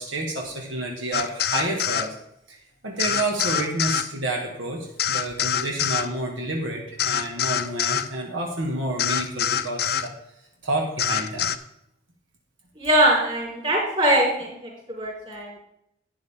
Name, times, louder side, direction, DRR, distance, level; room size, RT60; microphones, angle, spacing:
voice 1, 0.0-2.1 2.5-2.6 2.8-10.1 10.6-11.5, right 2 dB, 85° right, 0 dB, 1.8 m, -29 dB
sound 1, 1.1-2.1 3.0-4.1 5.0-6.1 7.0-8.1 9.0-10.1 11.0-11.6, left 9 dB, 55° left, 0.5 m, -25 dB
voice 2, 12.8-15.6, right 1 dB, 30° right, -3 dB, 4.3 m, -22 dB
11.5 x 9.5 x 3.6 m, 0.77 s
head